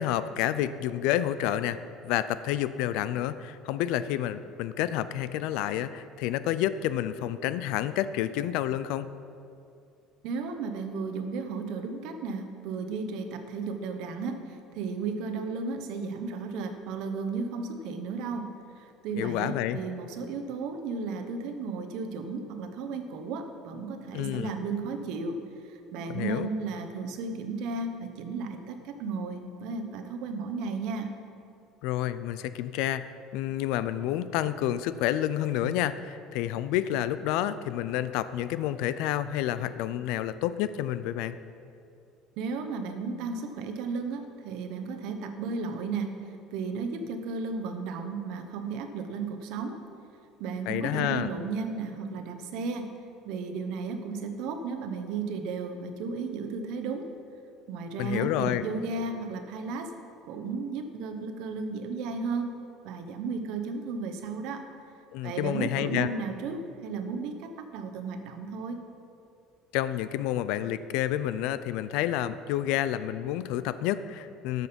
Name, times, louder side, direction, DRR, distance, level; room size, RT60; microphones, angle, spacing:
voice 1, 0.0-1.8 2.0-9.1 19.2-19.8 24.1-24.5 26.1-26.5 31.8-41.4 50.7-51.3 58.0-58.6 65.1-66.1 69.7-74.7, left 12 dB, 65° left, 14 dB, 0.4 m, -29 dB
voice 2, 10.2-25.4 25.7-31.1 42.4-46.1 46.5-49.8 50.4-52.9 53.2-57.1 57.7-59.9 60.2-62.5 62.8-64.6 65.2-68.8, right 4 dB, 60° right, 6 dB, 0.9 m, -34 dB
13.0 x 6.3 x 5.2 m, 2.5 s
cardioid pair, 175°, 0 cm